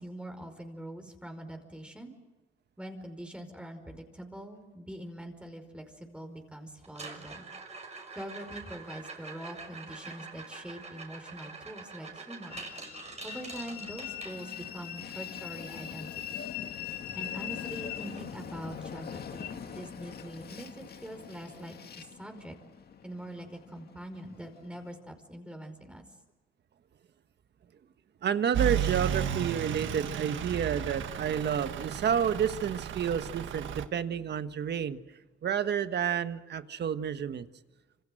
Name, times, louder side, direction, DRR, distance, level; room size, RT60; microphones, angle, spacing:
voice 1, 0.0-2.1 2.8-7.4 8.1-12.6 13.2-16.5 17.1-22.5 23.0-26.0, right 1 dB, 5° right, 5 dB, 5.0 m, -43 dB
sound 1, 6.8-14.8 17.1-17.2 17.4-17.7 18.2-18.3 18.8-18.9 20.8-20.9, right 4 dB, 35° right, 6.5 m, -45 dB
Train, 12.5-25.0, left 9 dB, 50° left, 2.0 m, -42 dB
voice 2, 28.2-35.0 35.4-37.5, right 8 dB, 60° right, 10 dB, 1.5 m, -30 dB
Truck / Idling, 28.5-33.9, right 10 dB, 75° right, 1.7 m, -33 dB
27.0 x 26.0 x 7.8 m, 1.2 s
cardioid pair, 90°, 20 cm